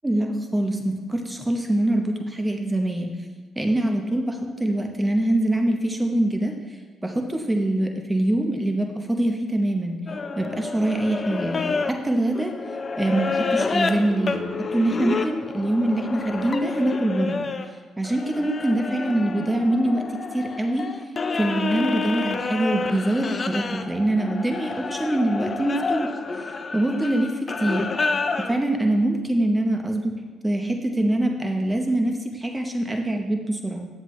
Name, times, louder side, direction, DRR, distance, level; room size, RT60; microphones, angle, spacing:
voice 1, 0.0-3.1 3.6-6.5 7.0-10.0 10.4-12.5 13.0-17.5 18.0-20.0 20.3-20.8 21.3-26.1 26.7-27.3 27.6-27.8 28.5-30.1 30.4-33.9, right 1 dB, 15° right, 3 dB, 0.8 m, -24 dB
sound 1, 10.1-17.6 18.0-28.5, left 4 dB, 35° left, 0.5 m, -29 dB
9.3 x 7.4 x 3.1 m, 1.4 s
cardioid pair, 90°, 0 cm